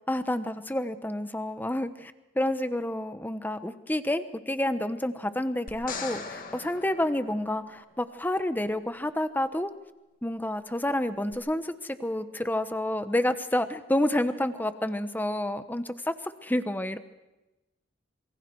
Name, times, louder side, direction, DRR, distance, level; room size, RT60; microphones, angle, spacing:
voice 1, 0.1-9.7 10.2-16.1 16.4-17.0, left 1 dB, 10° left, 11 dB, 1.1 m, -29 dB
sound 1, 5.7-8.0 11.3-11.4, left 4 dB, 45° left, 2.0 m, -40 dB
27.0 x 23.5 x 4.7 m, 1.0 s
head